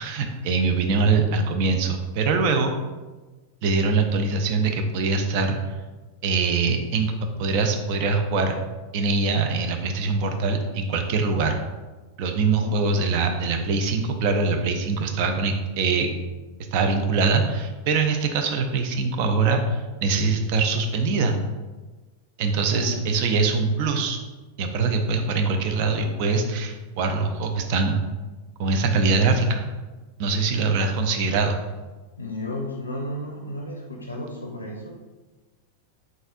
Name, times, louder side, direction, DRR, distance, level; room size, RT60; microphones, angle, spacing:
voice 1, 0.0-2.7 3.6-5.6 6.2-7.1 7.4-8.6 8.9-11.6 12.2-16.1 16.7-21.4 22.4-24.2 24.6-28.0 28.6-29.6 30.2-31.6, right 4 dB, 45° right, 5 dB, 0.4 m, -23 dB
voice 2, 12.6-12.9 22.7-23.1 32.2-35.0, left 1 dB, 80° left, 1 dB, 0.5 m, -33 dB
4.0 x 3.7 x 2.5 m, 1.2 s
figure-of-eight pair, 90°, 0 cm